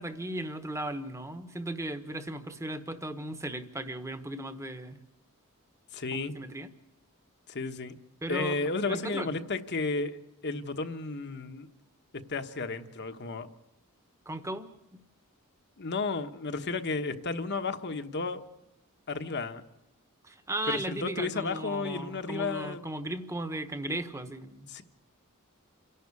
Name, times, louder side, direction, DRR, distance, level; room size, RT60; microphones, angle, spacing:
voice 1, 0.0-5.0 6.3-6.7 8.2-9.3 14.3-14.7 20.2-24.7, right 1 dB, 15° right, 9 dB, 1.2 m, -36 dB
voice 2, 5.9-6.3 7.5-7.9 8.3-10.2 10.4-11.7 12.3-13.5 15.8-18.4 19.1-19.6 20.7-22.8 24.7-24.8, left 3 dB, 50° left, 8 dB, 1.2 m, -33 dB
28.0 x 11.5 x 8.3 m, 0.91 s
head